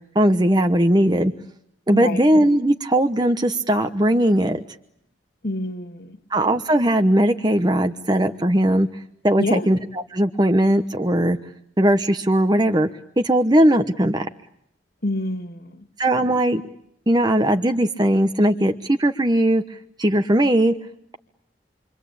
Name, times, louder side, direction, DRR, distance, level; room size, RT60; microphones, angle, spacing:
voice 1, 0.1-1.3 1.9-4.6 6.3-11.4 11.8-12.9 13.2-14.3 16.0-16.6 17.1-20.7, right 1 dB, 25° right, 6 dB, 1.0 m, -19 dB
voice 2, 1.9-2.2 5.4-6.2 9.4-9.7 15.0-15.8, left 1 dB, 55° left, 10 dB, 2.3 m, -27 dB
28.5 x 24.0 x 8.6 m, 0.76 s
head